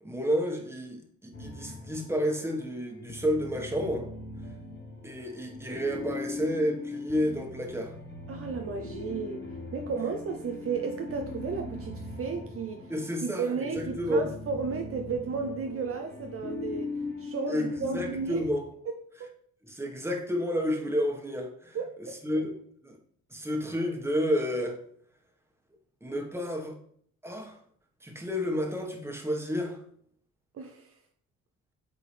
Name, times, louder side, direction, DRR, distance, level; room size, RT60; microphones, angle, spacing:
voice 1, 0.0-4.1 5.0-7.9 12.9-14.3 17.5-18.6 19.6-22.5 22.8-23.0 23.3-24.8 26.0-26.8 27.2-27.6 28.0-29.8, equal, 10° right, 1.4 m, -30 dB
sound 1, 1.3-18.5, left 2 dB, 35° left, 1.3 m, -40 dB
voice 2, 8.3-12.9 13.2-16.9 17.2-18.4 19.2-19.3 21.7-22.2 30.5-30.9, right 5 dB, 50° right, 0.7 m, -34 dB
8.3 x 3.8 x 3.3 m
cardioid pair, 90°, 30 cm